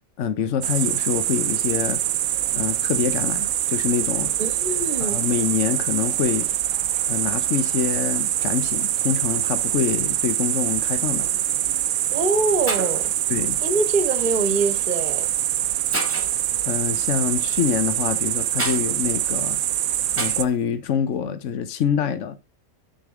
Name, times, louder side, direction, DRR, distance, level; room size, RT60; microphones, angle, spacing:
voice 1, 0.2-2.0 2.5-4.3 5.0-6.5 7.1-11.3 13.3-13.6 16.6-19.6 20.2-22.3, left 8 dB, 75° left, 1.2 m, -25 dB
sound 1, 0.6-20.4, right 12 dB, 85° right, 1.0 m, -24 dB
voice 2, 4.4-5.2 12.1-13.1 13.6-15.3, right 3 dB, 35° right, 1.3 m, -24 dB
Shatter, 11.4-11.7 12.4-12.5 12.7-13.1 14.4-14.6 15.2-15.3 15.9-16.4 18.6-18.8 20.2-20.6, right 1 dB, 10° right, 1.7 m, -30 dB
8.6 x 6.4 x 3.6 m
omnidirectional pair, 1.3 m